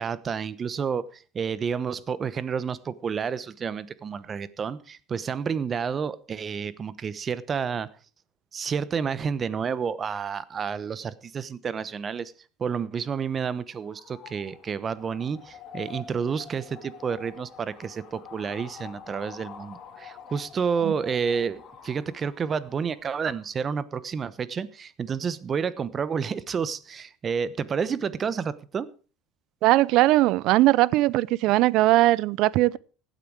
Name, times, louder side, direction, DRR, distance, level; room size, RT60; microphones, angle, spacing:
voice 1, 0.0-7.9 8.5-12.3 12.6-28.9, right 6 dB, 30° right, 1.0 m, -30 dB
sound 1, 13.7-23.5, left 7 dB, 45° left, 3.2 m, -46 dB
voice 2, 29.6-32.8, right 17 dB, 65° right, 0.5 m, -20 dB
16.0 x 9.2 x 4.8 m
supercardioid pair, 110°, 0 cm